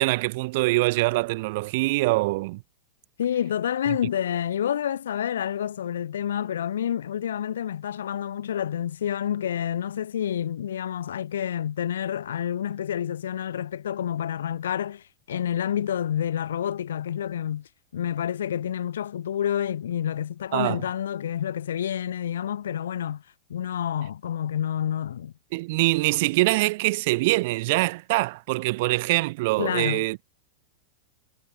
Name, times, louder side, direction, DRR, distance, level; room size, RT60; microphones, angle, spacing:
voice 1, 0.0-2.6 20.5-20.8 25.5-30.2, right 22 dB, 60° right, 0.5 m, -24 dB
voice 2, 3.2-23.2 23.5-25.3 29.6-30.1, left 9 dB, 80° left, 0.8 m, -28 dB
hypercardioid pair, 110°, 0 cm